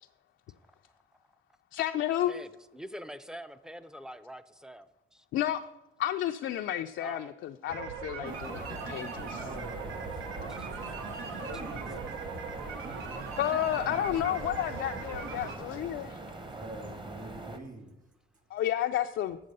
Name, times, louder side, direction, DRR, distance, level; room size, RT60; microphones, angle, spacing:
voice 1, 1.7-2.4 5.3-5.6 6.0-9.5 13.4-16.2 18.5-19.4, left 12 dB, 70° left, 0.4 m, -31 dB
voice 2, 2.3-4.9 5.1-5.2 7.0-7.3 8.7-8.8 10.6-10.7, equal, 5° right, 0.4 m, -44 dB
sound 1, 7.7-15.6, right 5 dB, 85° right, 1.1 m, -40 dB
sound 2, 8.2-17.6, right 2 dB, 25° right, 1.0 m, -43 dB
voice 3, 9.3-12.1 16.5-17.9, right 2 dB, 40° right, 1.8 m, -45 dB
7.7 x 6.6 x 5.3 m
cardioid pair, 90°, 20 cm